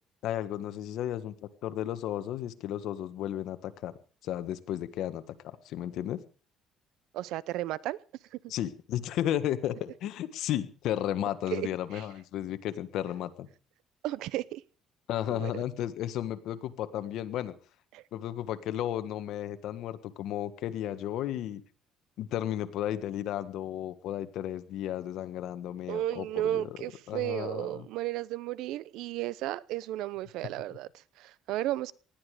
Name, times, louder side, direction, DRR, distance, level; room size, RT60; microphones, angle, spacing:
voice 1, 0.2-1.3 1.6-3.9 4.2-6.2 8.5-13.5 15.1-17.5 18.1-21.6 22.2-26.8 27.1-27.8, left 11 dB, 70° left, 1.5 m, -33 dB
voice 2, 7.1-8.0 8.3-8.4 11.5-11.7 11.9-12.0 14.0-14.6 15.3-15.6 17.9-18.0 25.9-31.9, right 14 dB, 85° right, 0.7 m, -34 dB
19.5 x 13.0 x 5.0 m
cardioid pair, 120°, 0 cm